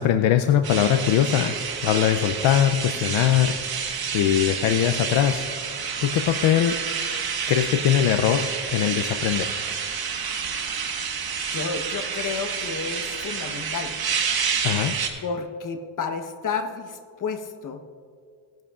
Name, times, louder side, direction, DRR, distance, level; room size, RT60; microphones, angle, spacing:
voice 1, 0.0-1.6 1.8-3.6 4.1-5.5 6.0-6.8 7.5-9.5 14.6-15.0, left 10 dB, 70° left, 7 dB, 0.6 m, -21 dB
sound 1, 0.6-15.1, right 6 dB, 50° right, 1.4 m, -29 dB
voice 2, 11.5-14.0 15.2-17.8, left 5 dB, 40° left, 5 dB, 1.1 m, -31 dB
18.5 x 10.5 x 2.4 m, 2.3 s
cardioid pair, 110°, 48 cm